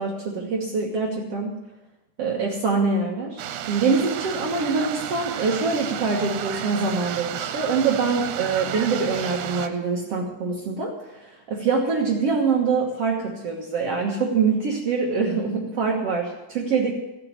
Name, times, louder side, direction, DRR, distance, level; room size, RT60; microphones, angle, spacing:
voice 1, 0.0-1.5 2.2-3.4 3.7-10.9 11.2-16.9, right 4 dB, 60° right, -1 dB, 1.6 m, -24 dB
sound 1, 3.4-9.7, right 10 dB, 85° right, 2.9 m, -32 dB
16.5 x 6.4 x 9.4 m, 0.97 s
omnidirectional pair, 4.8 m